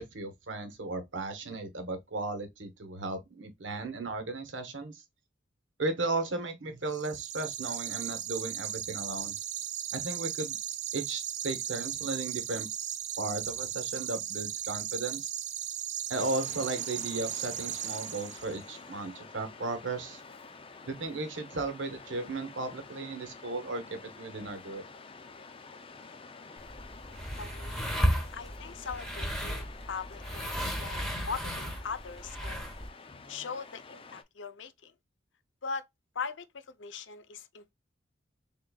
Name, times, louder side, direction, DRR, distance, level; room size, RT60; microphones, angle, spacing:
voice 1, 0.0-5.0 5.8-9.4 9.9-10.6 10.9-12.7 13.2-15.3 16.1-20.2 20.8-24.8, right 3 dB, 80° right, 1.1 m, -35 dB
sound 1, 6.9-18.7, right 10 dB, 40° right, 0.6 m, -37 dB
Waves surf, 16.2-34.2, left 4 dB, 30° left, 0.5 m, -49 dB
sound 2, 26.6-32.9, equal, 5° left, 1.0 m, -34 dB
voice 2, 27.4-27.9 28.3-32.6 33.3-34.9 35.6-35.8 36.1-37.7, left 5 dB, 80° left, 0.6 m, -40 dB
3.8 x 3.7 x 2.3 m
head